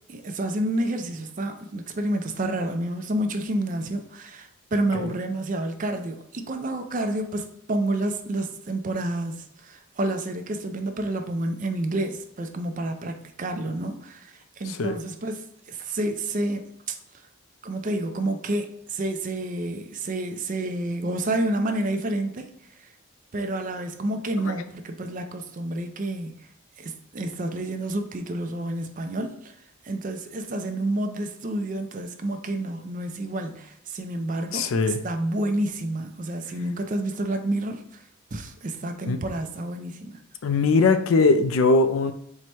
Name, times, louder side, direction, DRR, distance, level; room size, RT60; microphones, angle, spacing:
voice 1, 0.1-15.4 15.7-17.0 17.6-22.5 23.3-26.4 26.8-29.5 29.8-37.8 38.3-40.2, right 1 dB, 35° right, 6 dB, 0.4 m, -29 dB
voice 2, 34.5-35.0 39.1-39.2 40.4-42.1, left 3 dB, 70° left, 9 dB, 0.4 m, -20 dB
4.6 x 2.2 x 4.2 m, 0.71 s
head